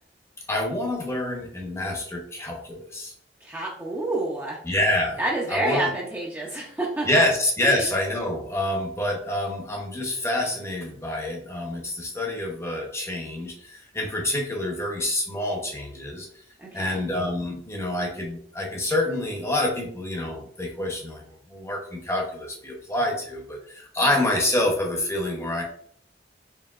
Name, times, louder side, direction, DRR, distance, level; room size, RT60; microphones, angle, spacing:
voice 1, 0.5-3.1 4.6-5.2 5.5-5.9 7.1-16.3 16.7-21.2 21.5-25.6, left 1 dB, 15° left, 1 dB, 0.8 m, -27 dB
voice 2, 3.4-4.6 5.2-7.2 7.6-7.9 16.6-17.0 24.1-24.3, right 2 dB, 10° right, -3 dB, 0.5 m, -29 dB
4.6 x 3.3 x 2.4 m, 0.62 s
head